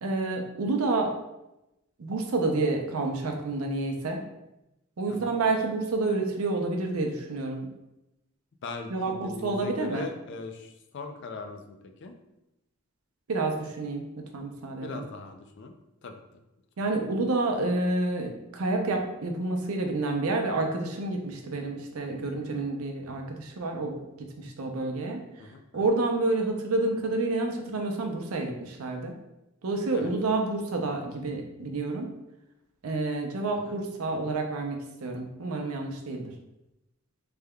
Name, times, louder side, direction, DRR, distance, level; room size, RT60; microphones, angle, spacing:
voice 1, 0.0-1.1 2.0-4.2 5.0-7.7 8.9-10.1 13.3-15.0 16.8-25.2 25.7-29.1 29.6-32.1 32.8-36.3, right 2 dB, 90° right, 3 dB, 0.6 m, -29 dB
voice 2, 8.6-12.1 14.8-15.7 16.0-16.4 25.4-25.6 29.9-30.1 33.6-33.8, left 3 dB, 55° left, 6 dB, 0.4 m, -40 dB
3.5 x 3.3 x 2.2 m, 0.92 s
head